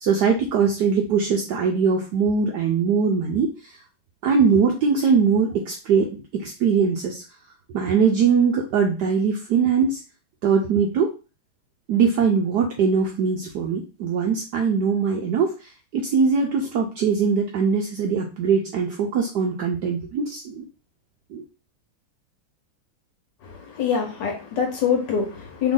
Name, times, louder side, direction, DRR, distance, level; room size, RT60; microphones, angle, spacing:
voice 1, 0.0-3.7 4.2-7.2 7.7-10.0 10.4-11.1 11.9-20.6 21.3-21.4, right 5 dB, 75° right, 1 dB, 1.0 m, -21 dB
voice 2, 23.4-25.7, left 7 dB, 65° left, 2 dB, 1.5 m, -24 dB
3.5 x 2.5 x 3.7 m, 0.32 s
omnidirectional pair, 2.3 m